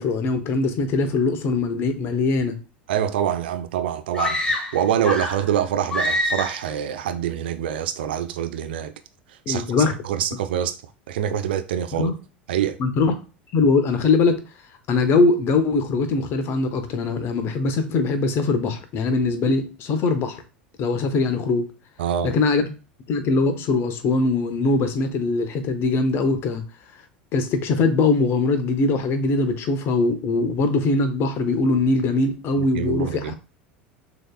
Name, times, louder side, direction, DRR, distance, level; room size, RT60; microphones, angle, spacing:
voice 1, 0.0-2.6 9.5-9.9 11.9-12.1 12.8-13.2 13.5-14.4 14.9-20.4 20.8-21.7 22.2-22.6 23.1-26.6 27.3-33.3, left 3 dB, 40° left, 0.8 m, -21 dB
voice 2, 2.9-4.4 4.7-8.9 9.5-9.7 10.0-10.8 11.1-12.1 12.5-12.8 22.0-22.3 32.7-33.3, right 10 dB, 65° right, 0.4 m, -25 dB
sound 1, 4.1-5.5 5.9-6.7, left 1 dB, 10° left, 1.2 m, -25 dB
6.2 x 2.9 x 2.2 m
figure-of-eight pair, 75°, 6 cm